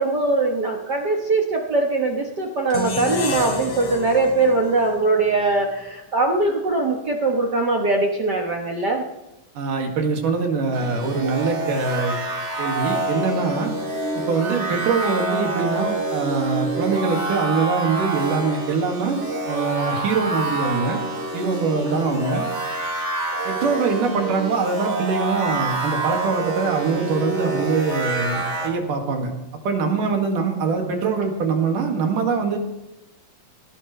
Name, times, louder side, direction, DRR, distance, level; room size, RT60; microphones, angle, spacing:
voice 1, 0.0-9.0 21.9-22.0, right 3 dB, 60° right, 1 dB, 1.0 m, -21 dB
sound 1, 2.7-5.9, left 2 dB, 65° left, 4.3 m, -31 dB
voice 2, 9.6-12.2 12.6-13.7 14.2-21.0 21.3-22.4 23.4-29.3 29.7-32.6, right 4 dB, 75° right, 2 dB, 3.6 m, -23 dB
sound 2, 10.7-28.7, right 2 dB, 35° right, 3.3 m, -27 dB
19.0 x 16.5 x 3.3 m, 0.95 s
omnidirectional pair, 3.8 m